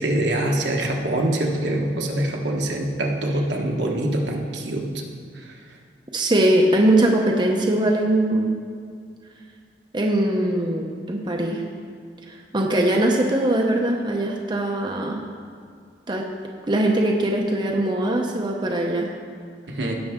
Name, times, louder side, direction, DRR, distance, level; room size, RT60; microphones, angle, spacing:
voice 1, 0.0-4.9 19.7-20.0, right 1 dB, 75° right, 0 dB, 1.3 m, -24 dB
voice 2, 6.1-8.6 9.9-11.6 12.3-15.2 16.1-16.3 16.7-19.1, right 1 dB, 25° right, 0 dB, 0.7 m, -21 dB
16.5 x 6.1 x 3.7 m, 2.1 s
head